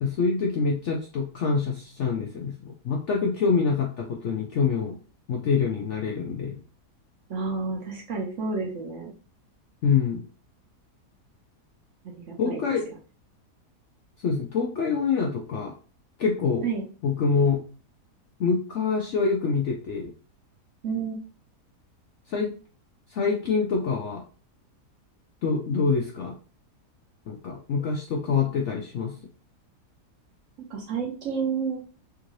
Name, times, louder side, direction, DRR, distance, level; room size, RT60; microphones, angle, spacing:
voice 1, 0.0-5.0 5.3-6.5 9.8-10.2 12.4-12.8 14.2-15.7 16.2-16.6 17.0-17.6 18.4-20.1 22.3-22.5 23.1-24.2 25.4-26.3 27.3-29.1, left 5 dB, 65° left, 0 dB, 0.7 m, -25 dB
voice 2, 7.3-9.1 12.0-12.6 16.6-16.8 20.8-21.2 28.3-28.5 30.7-31.9, right 5 dB, 60° right, 0 dB, 0.9 m, -30 dB
3.6 x 2.5 x 3.0 m, 0.37 s
omnidirectional pair, 1.7 m